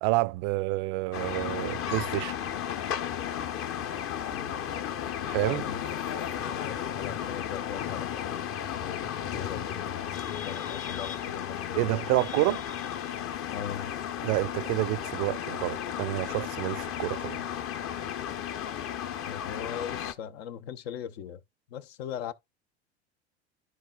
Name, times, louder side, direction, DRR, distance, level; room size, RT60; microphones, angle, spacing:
voice 1, 0.0-2.3 5.3-5.6 11.8-12.6 14.2-17.4, right 19 dB, 55° right, 0.5 m, -28 dB
sound 1, 1.1-20.1, left 9 dB, 40° left, 0.9 m, -34 dB
voice 2, 4.3-4.7 5.1-6.0 6.4-8.2 8.7-12.0 13.5-14.0 19.3-21.4 21.7-22.3, left 8 dB, 70° left, 0.9 m, -40 dB
13.0 x 4.5 x 2.3 m
hypercardioid pair, 80°, 33 cm